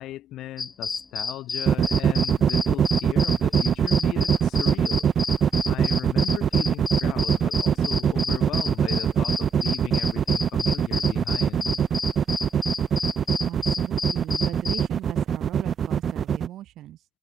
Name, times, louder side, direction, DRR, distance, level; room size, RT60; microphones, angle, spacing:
voice 1, 0.0-5.1 5.7-11.8, left 14 dB, 85° left, 2.4 m, -38 dB
sound 1, 0.6-14.9, left 4 dB, 30° left, 1.5 m, -31 dB
sound 2, 1.7-16.5, right 8 dB, 60° right, 2.0 m, -22 dB
voice 2, 13.5-17.1, right 13 dB, 85° right, 6.6 m, -38 dB
cardioid pair, 90°, 0 cm